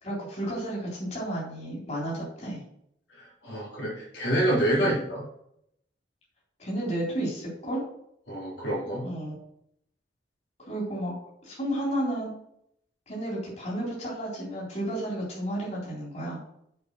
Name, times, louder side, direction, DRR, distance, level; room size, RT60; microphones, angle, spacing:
voice 1, 0.0-2.6 4.8-4.9 6.6-7.8 9.0-9.4 10.7-11.1 11.4-12.3 13.1-16.4, right 1 dB, 40° left, -5 dB, 3.7 m, -32 dB
voice 2, 3.1-5.2 8.3-9.1, right 1 dB, 80° left, -5 dB, 3.8 m, -27 dB
7.9 x 5.4 x 6.1 m, 0.73 s
head